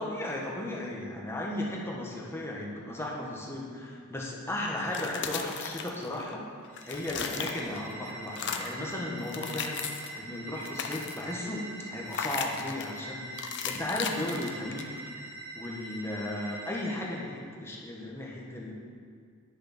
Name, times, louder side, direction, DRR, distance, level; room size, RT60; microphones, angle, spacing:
voice 1, 0.0-6.4 6.9-9.8 10.1-14.9 15.5-18.7, left 1 dB, 10° left, -3 dB, 1.5 m, -35 dB
sound 1, 4.8-6.3 6.6-7.9 8.3-8.8 9.2-10.2 10.5-11.3 12.1-12.9 13.4-15.1, left 7 dB, 55° left, 0.7 m, -36 dB
sound 2, 6.6-17.2, right 2 dB, 20° right, 3.0 m, -43 dB
10.5 x 6.4 x 6.0 m, 2.2 s
head